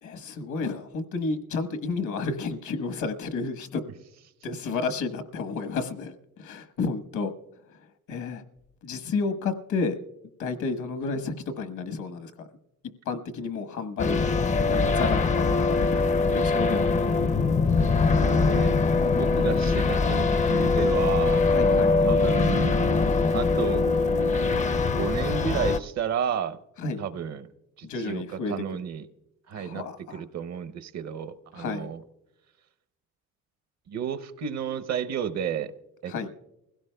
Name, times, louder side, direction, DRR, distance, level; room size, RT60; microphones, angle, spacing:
voice 1, 0.0-3.8 4.4-7.3 8.1-8.4 8.8-10.0 10.4-12.5 13.0-14.3 14.7-16.9 21.5-22.0 26.8-27.0 27.8-28.5 29.5-30.2 31.5-31.9 36.1-36.3, left 4 dB, 75° left, 10 dB, 1.2 m, -31 dB
sound 1, 14.0-25.8, left 4 dB, 25° left, 0.4 m, -22 dB
voice 2, 18.3-18.7 19.2-21.4 22.0-23.0 23.3-23.8 24.9-26.6 27.0-27.5 27.8-28.2 28.5-29.1 29.5-29.8 30.1-32.0 33.9-35.7 36.0-36.1, right 8 dB, 60° right, 13 dB, 0.7 m, -32 dB
24.0 x 16.5 x 2.2 m, 0.94 s
cardioid pair, 90°, 30 cm